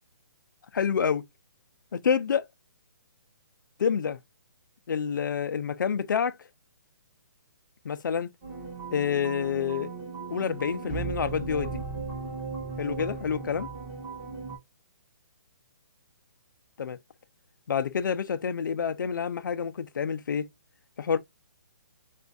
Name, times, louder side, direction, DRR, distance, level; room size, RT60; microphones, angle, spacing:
voice 1, 0.7-1.2 1.9-2.4 3.8-4.2 4.9-6.4 7.8-8.3 8.9-9.9 10.3-11.8 12.8-13.7 16.8-17.0 17.7-20.5 21.0-21.2, left 7 dB, 75° left, 0.4 m, -28 dB
sound 1, 8.4-14.6, right 4 dB, 10° right, 0.9 m, -36 dB
4.3 x 2.3 x 2.4 m
hypercardioid pair, 175°, 11 cm